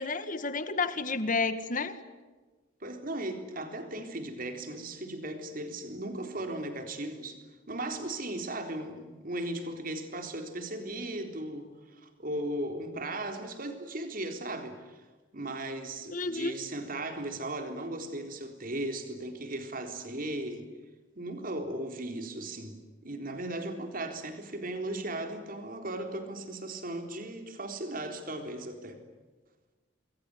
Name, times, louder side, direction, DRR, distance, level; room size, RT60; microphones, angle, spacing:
voice 1, 0.0-2.0 16.1-16.6, left 3 dB, 45° left, 11 dB, 1.9 m, -31 dB
voice 2, 2.8-15.0 15.3-20.6 21.2-22.8 23.0-29.0, right 1 dB, 50° right, 6 dB, 3.8 m, -37 dB
27.0 x 22.5 x 9.6 m, 1.3 s
head